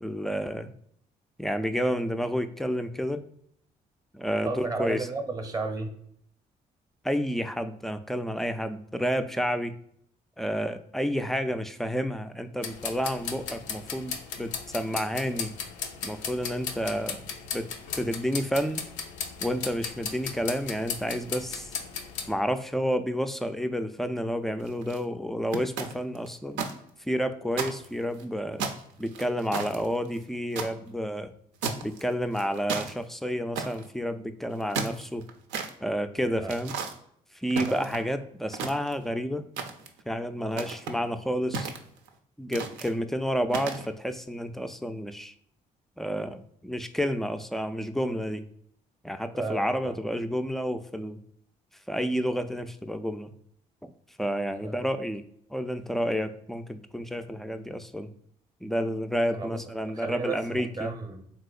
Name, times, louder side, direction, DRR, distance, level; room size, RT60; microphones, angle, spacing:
voice 1, 0.0-0.7 1.4-3.2 4.1-5.1 7.0-9.8 10.4-15.5 16.0-17.3 17.5-17.7 18.0-18.8 19.4-21.7 22.3-26.6 27.0-28.7 29.0-31.3 31.8-35.2 35.8-36.7 37.4-39.4 40.1-41.7 42.4-45.3 46.0-48.4 49.0-51.2 51.9-53.3 53.8-53.9 54.2-55.2 55.5-58.1 58.6-60.9, equal, ahead, 10 dB, 0.3 m, -30 dB
voice 2, 4.4-6.0 36.4-36.6 37.7-37.9 49.3-50.0 54.6-54.8 59.3-61.3, right 3 dB, 20° right, 6 dB, 0.7 m, -34 dB
sound 1, 12.6-22.3, left 6 dB, 80° left, 0.4 m, -36 dB
sound 2, 24.6-25.0 25.5-26.7 27.1-27.2 27.5-28.2 28.6-30.7 31.6-32.0 32.3-32.9 33.5-33.9 34.5-35.7 36.5-36.9 37.5-38.1 38.5-39.1 39.6-40.0 40.5-41.0 41.5-42.1 42.5-42.9 43.5-43.9, right 5 dB, 80° right, 0.5 m, -33 dB
3.6 x 2.7 x 2.3 m, 0.69 s
hypercardioid pair, 50°, 19 cm